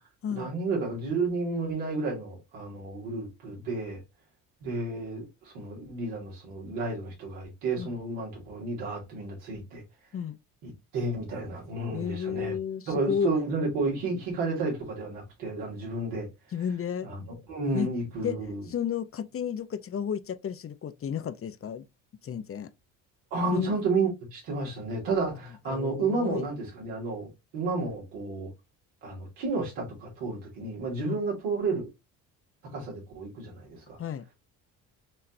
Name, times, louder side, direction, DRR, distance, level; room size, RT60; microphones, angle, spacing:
voice 1, 0.3-4.0 4.6-9.8 10.6-12.5 12.9-16.3 17.0-17.2 17.5-18.6 23.3-27.3 27.5-28.5 29.0-31.9 32.6-34.0, right 3 dB, 85° right, 2.9 m, -31 dB
voice 2, 11.9-13.3 16.5-17.1 17.7-17.9 18.2-18.4 18.7-21.8 22.2-22.7 23.5-23.8 25.7-26.4 31.1-31.2 34.0-34.3, left 8 dB, 35° left, 0.6 m, -32 dB
6.1 x 3.2 x 2.6 m
supercardioid pair, 70°, 38 cm